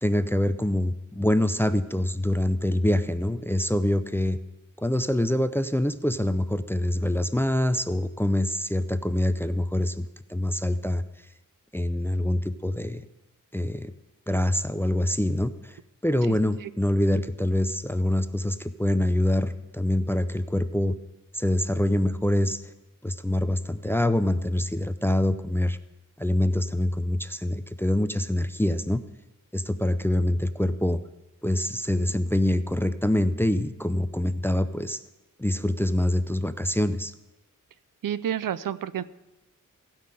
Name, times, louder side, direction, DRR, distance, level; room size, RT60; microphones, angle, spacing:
voice 1, 0.0-4.4 4.8-11.0 11.7-13.1 13.5-13.9 14.3-20.9 21.3-22.7 23.0-25.8 26.2-29.0 29.5-31.0 31.4-35.0 35.4-37.1, left 1 dB, 5° left, 12 dB, 0.4 m, -25 dB
voice 2, 38.0-39.0, right 10 dB, 75° right, 16 dB, 0.5 m, -29 dB
16.0 x 5.8 x 7.5 m, 1.0 s
wide cardioid pair, 120°, 33 cm